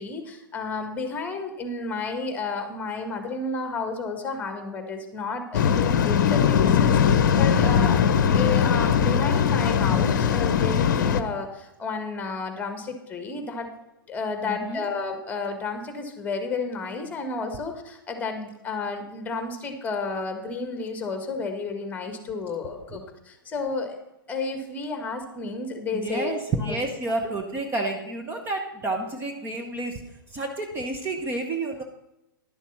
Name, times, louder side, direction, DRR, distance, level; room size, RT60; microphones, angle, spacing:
voice 1, 0.0-8.0 8.3-13.7 14.1-24.0 24.3-26.3 26.6-26.8, left 4 dB, 15° left, 6 dB, 1.7 m, -31 dB
Waves surf, 5.5-11.2, left 7 dB, 55° left, 0.8 m, -20 dB
voice 2, 14.4-14.9 22.6-23.0 25.9-30.0 30.3-31.8, right 2 dB, 20° right, 3 dB, 1.0 m, -30 dB
11.5 x 7.2 x 5.5 m, 0.89 s
figure-of-eight pair, 110°, 12 cm